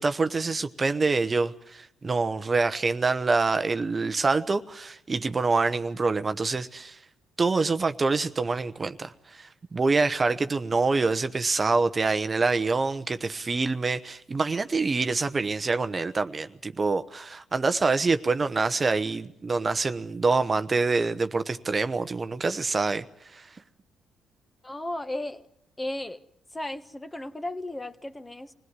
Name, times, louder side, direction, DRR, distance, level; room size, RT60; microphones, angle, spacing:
voice 1, 0.0-7.0 7.4-23.0 23.3-23.5, right 3 dB, 30° right, 1.0 m, -26 dB
voice 2, 24.6-25.5 25.8-26.2 26.5-28.5, left 1 dB, 15° left, 1.3 m, -35 dB
25.5 x 17.5 x 9.7 m
cardioid pair, 90°, 0 cm